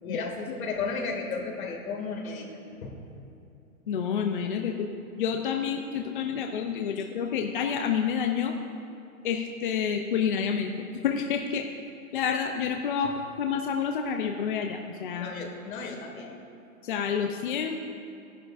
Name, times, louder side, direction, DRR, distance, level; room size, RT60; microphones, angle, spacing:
voice 1, 0.0-2.9 7.0-7.1 13.0-13.2 15.2-16.3, left 4 dB, 70° left, 1 dB, 2.2 m, -34 dB
voice 2, 3.9-4.9 5.2-8.5 9.2-10.7 11.0-11.7 12.1-13.1 13.4-15.3 16.8-17.8, left 7 dB, 40° left, 4 dB, 0.5 m, -28 dB
16.5 x 11.0 x 2.5 m, 2.7 s
hypercardioid pair, 165°, 43 cm